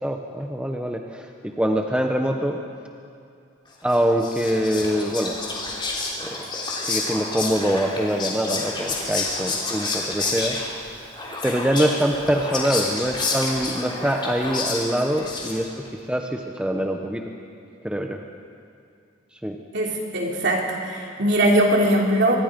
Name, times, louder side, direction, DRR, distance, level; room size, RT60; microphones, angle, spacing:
voice 1, 0.0-2.6 3.8-5.4 6.2-6.3 6.8-10.6 11.4-15.7 16.1-17.3 17.8-18.2 19.4-19.6, equal, 5° right, 3 dB, 0.9 m, -24 dB
Whispering, 3.9-15.9, left 3 dB, 25° left, 3.4 m, -29 dB
voice 2, 19.7-22.4, right 1 dB, 60° right, -1 dB, 3.5 m, -21 dB
24.5 x 21.0 x 5.3 m, 2.4 s
head